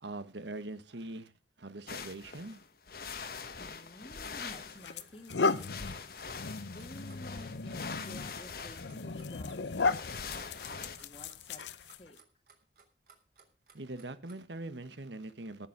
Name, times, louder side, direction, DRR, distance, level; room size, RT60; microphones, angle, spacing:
voice 1, 0.0-1.3 1.6-2.6 13.7-15.7, right 2 dB, 85° right, 1.4 m, -42 dB
sound 1, 1.9-4.9 5.5-11.0, left 5 dB, 55° left, 1.2 m, -43 dB
voice 2, 3.6-5.8 6.7-12.2, left 1 dB, 30° left, 1.5 m, -52 dB
sound 2, 4.0-4.2 4.8-12.2, left 4 dB, 80° left, 0.7 m, -35 dB
Clock, 5.0-14.6, right 5 dB, 55° right, 3.4 m, -61 dB
17.5 x 7.2 x 6.0 m
head